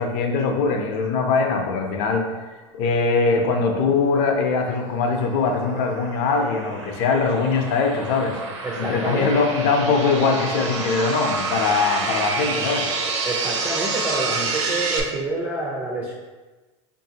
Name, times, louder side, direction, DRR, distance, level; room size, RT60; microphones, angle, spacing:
voice 1, 0.0-2.5 2.7-8.3 8.8-12.9, left 4 dB, 55° left, 3 dB, 0.6 m, -22 dB
sound 1, 4.2-15.0, right 3 dB, 80° right, 0.7 m, -29 dB
voice 2, 8.6-9.4 13.2-16.1, right 2 dB, 10° right, -3 dB, 0.4 m, -28 dB
4.6 x 2.6 x 2.8 m, 1.2 s
supercardioid pair, 150°, 15 cm